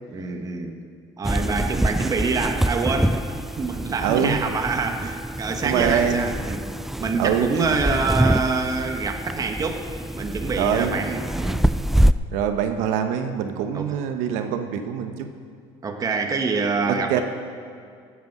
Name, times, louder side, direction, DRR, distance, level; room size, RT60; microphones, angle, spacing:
voice 1, 0.1-0.8 1.2-3.2 3.6-6.7 7.0-9.9 10.1-11.7 13.7-14.0 15.8-17.2, right 4 dB, 30° right, 4 dB, 1.4 m, -26 dB
sound 1, 1.2-12.1, right 1 dB, ahead, 0.3 m, -25 dB
voice 2, 4.0-4.4 5.6-6.3 7.2-7.7 10.6-11.0 12.3-15.3 16.9-17.2, right 8 dB, 75° right, 7 dB, 1.0 m, -24 dB
16.0 x 8.2 x 6.0 m, 2.3 s
supercardioid pair, 100°, 12 cm